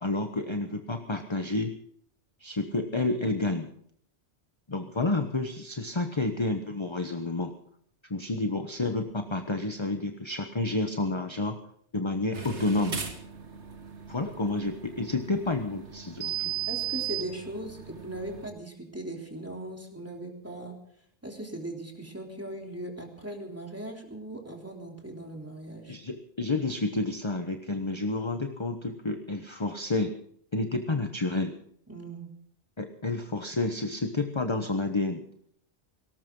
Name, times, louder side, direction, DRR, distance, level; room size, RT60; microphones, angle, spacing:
voice 1, 0.0-1.8 2.4-3.7 4.7-7.5 8.1-11.6 11.9-13.0 14.1-16.5 25.9-30.1 30.5-31.5 32.8-35.2, left 2 dB, 25° left, 6 dB, 1.1 m, -30 dB
sound 1, 12.3-18.5, right 9 dB, 85° right, 2.1 m, -37 dB
voice 2, 16.7-20.8 21.2-26.0 31.9-32.3, right 1 dB, 10° right, 1 dB, 3.4 m, -39 dB
18.5 x 18.5 x 3.8 m, 0.65 s
omnidirectional pair, 1.1 m